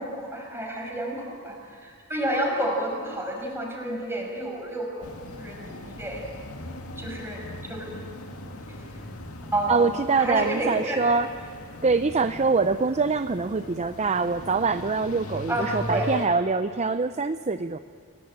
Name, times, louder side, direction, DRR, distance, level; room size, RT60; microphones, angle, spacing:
voice 1, 0.0-6.2 7.0-7.9 8.7-9.0 9.5-11.0 15.5-16.2, right 1 dB, 10° right, 0 dB, 6.0 m, -30 dB
sound 1, 5.0-16.3, left 1 dB, 80° left, 2.3 m, -40 dB
voice 2, 9.7-11.3 11.8-17.8, right 4 dB, 30° right, 10 dB, 0.6 m, -24 dB
29.0 x 18.0 x 8.8 m, 2.4 s
head